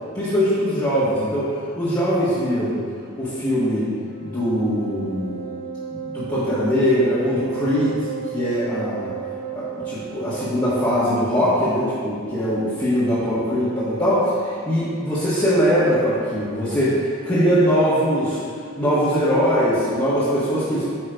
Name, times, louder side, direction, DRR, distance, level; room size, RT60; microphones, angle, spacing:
voice 1, 0.1-1.5 1.8-2.8 3.2-3.9 4.2-5.4 5.9-8.0 8.3-9.1 9.5-18.4 18.8-20.9, equal, 20° left, -14 dB, 1.5 m, -21 dB
Wind instrument woodwind instrument, 3.9-11.0, right 7 dB, 45° right, 1.4 m, -33 dB
9.2 x 3.1 x 5.1 m, 2.2 s
head